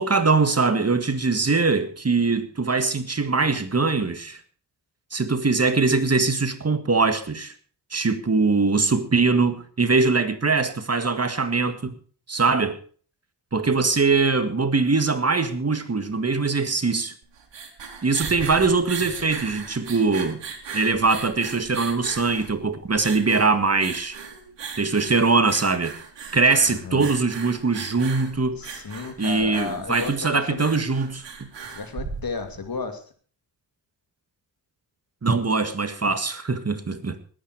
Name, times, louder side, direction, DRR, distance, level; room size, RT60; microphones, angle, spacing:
voice 1, 0.0-4.4 5.1-7.5 7.9-12.0 12.3-12.8 13.5-17.1 18.0-20.4 20.7-24.2 24.8-26.0 26.3-28.6 29.2-31.5 35.2-37.2, right 4 dB, 35° right, 1.8 m, -22 dB
sound 1, 17.2-32.7, right 5 dB, 80° right, 2.9 m, -38 dB
voice 2, 26.7-27.1 28.6-30.7 31.7-33.0, left 5 dB, 55° left, 2.8 m, -33 dB
20.0 x 9.3 x 4.8 m
cardioid pair, 65°, 43 cm